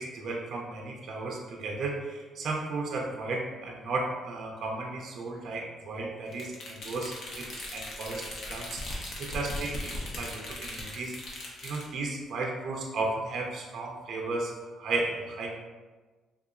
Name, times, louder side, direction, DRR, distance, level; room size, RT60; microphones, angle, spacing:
voice 1, 0.0-15.6, right 3 dB, 55° right, -1 dB, 0.5 m, -34 dB
sound 1, 6.3-11.9, left 1 dB, 60° left, 0.8 m, -39 dB
3.5 x 2.9 x 2.4 m, 1.3 s
cardioid pair, 120°, 0 cm